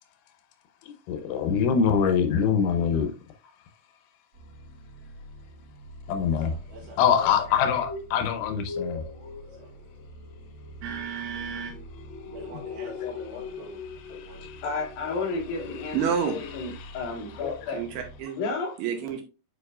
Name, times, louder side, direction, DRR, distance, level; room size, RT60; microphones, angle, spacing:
voice 1, 0.9-3.1 6.1-6.5 7.0-9.0 13.0-13.7 14.1-14.6 15.1-15.2 15.6-16.0 16.8-17.6, left 7 dB, 85° left, 3.2 m, -25 dB
sound 1, 4.3-18.2, equal, 35° right, 1.9 m, -47 dB
voice 2, 6.3-7.4 9.5-9.9 10.8-11.8 12.2-13.8 14.2-14.5, right 7 dB, 85° right, 3.8 m, -40 dB
sound 2, 7.5-16.8 17.1-17.4 17.7-17.8, left 4 dB, 40° left, 2.3 m, -41 dB
voice 3, 14.6-16.0 16.3-17.8 18.4-18.7, left 4 dB, 60° left, 2.9 m, -32 dB
voice 4, 15.9-16.7 17.7-18.4 18.8-19.2, right 7 dB, 70° right, 2.9 m, -29 dB
9.0 x 4.9 x 2.4 m
omnidirectional pair, 5.3 m